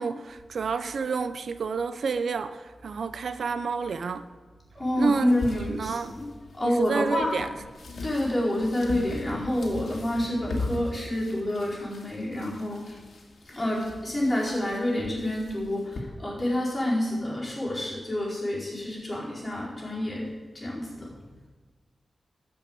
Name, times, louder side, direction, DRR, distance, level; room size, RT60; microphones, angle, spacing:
voice 1, 0.0-4.3 5.0-5.3 5.7-6.2 6.6-7.5, right 5 dB, 75° right, 0.5 m, -29 dB
voice 2, 4.7-6.3 6.5-7.4 8.0-13.0 13.4-21.2, left 1 dB, 20° left, 4.5 m, -28 dB
sound 1, 5.3-16.0, left 2 dB, 70° left, 2.1 m, -40 dB
13.0 x 5.6 x 8.7 m
wide cardioid pair, 125°, 0 cm